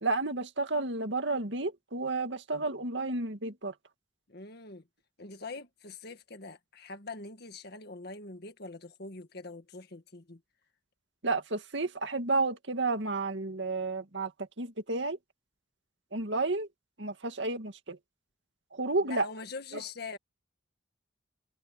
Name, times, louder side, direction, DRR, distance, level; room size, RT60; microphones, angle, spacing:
voice 1, 0.0-3.7 11.2-15.2 16.1-16.7 17.0-18.0 18.7-19.3 19.7-19.8, right 3 dB, 70° right, 2.2 m, -31 dB
voice 2, 4.3-4.9 5.2-10.4 19.0-20.2, left 3 dB, 60° left, 1.8 m, -43 dB
head